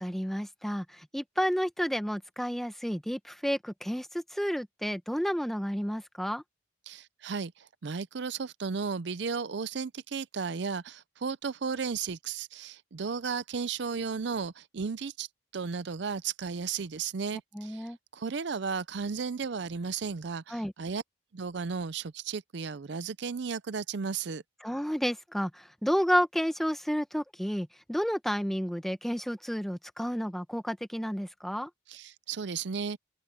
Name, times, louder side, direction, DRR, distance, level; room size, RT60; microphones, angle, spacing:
voice 1, 0.0-6.4 17.5-18.0 20.5-20.7 24.6-31.7, equal, ahead, 0.8 m, -31 dB
voice 2, 6.9-15.3 15.5-21.0 21.3-24.4 31.9-33.0, right 5 dB, 60° right, 0.5 m, -34 dB
head